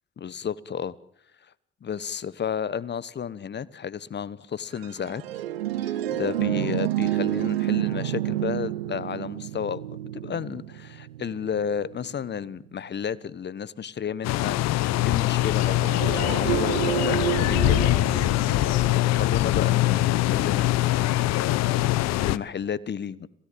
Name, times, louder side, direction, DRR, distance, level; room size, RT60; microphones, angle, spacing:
voice 1, 0.2-0.9 1.8-5.4 5.8-9.8 10.1-18.2 18.6-21.6 22.1-23.3, left 7 dB, 35° left, 20 dB, 1.2 m, -32 dB
sound 1, 4.8-12.4 15.6-19.6, right 14 dB, 85° right, 1.3 m, -29 dB
sound 2, 14.2-22.4, left 16 dB, 60° left, 1.0 m, -23 dB
27.5 x 17.5 x 8.6 m, 0.73 s
hypercardioid pair, 55°, 30 cm